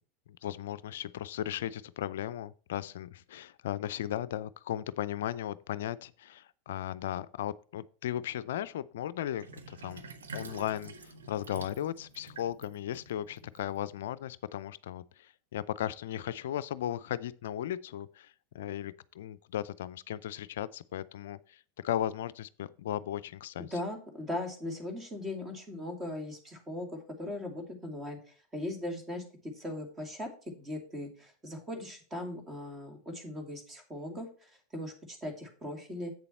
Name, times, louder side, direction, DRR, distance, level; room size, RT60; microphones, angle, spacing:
voice 1, 0.4-10.0 10.3-23.7, left 11 dB, 70° left, 0.4 m, -36 dB
Sink (filling or washing), 9.4-14.1, right 3 dB, 80° right, 1.0 m, -48 dB
voice 2, 23.6-36.1, left 1 dB, 20° right, 2.6 m, -39 dB
8.1 x 6.8 x 4.3 m
hypercardioid pair, 90°, 0 cm